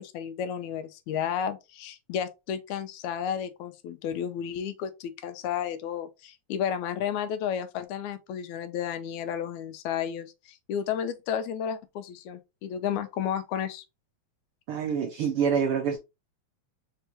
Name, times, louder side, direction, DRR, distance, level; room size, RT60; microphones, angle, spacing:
voice 1, 0.0-13.8, left 8 dB, 85° left, 2.0 m, -32 dB
voice 2, 14.7-16.0, right 7 dB, 90° right, 1.2 m, -26 dB
4.6 x 3.4 x 2.9 m
omnidirectional pair, 3.3 m